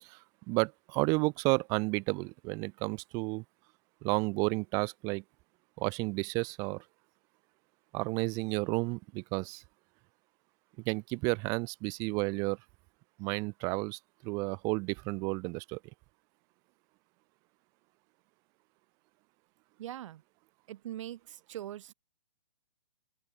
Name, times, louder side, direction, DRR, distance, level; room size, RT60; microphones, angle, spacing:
voice 1, 0.0-3.4 4.0-5.2 5.8-6.8 7.9-9.6 10.9-12.6 13.2-15.8, right 28 dB, 20° right, 0.4 m, -32 dB
voice 2, 19.8-20.2 20.7-21.9, right 12 dB, 50° right, 0.8 m, -42 dB
open air
figure-of-eight pair, 125°, 21 cm